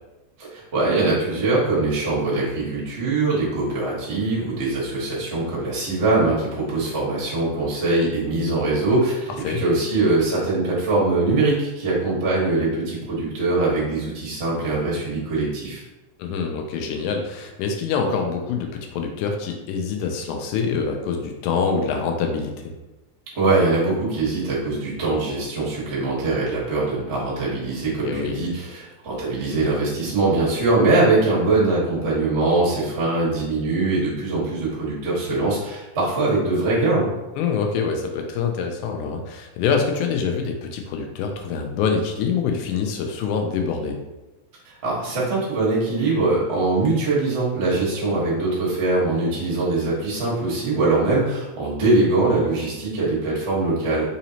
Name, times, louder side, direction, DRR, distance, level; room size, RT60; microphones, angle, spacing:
voice 1, 0.4-15.8 23.3-37.1 44.8-54.1, right 2 dB, 70° right, -6 dB, 0.6 m, -22 dB
voice 2, 16.2-22.7 28.0-28.4 37.4-44.0, left 5 dB, 90° left, 3 dB, 2.0 m, -25 dB
5.0 x 2.7 x 2.8 m, 1.1 s
omnidirectional pair, 3.4 m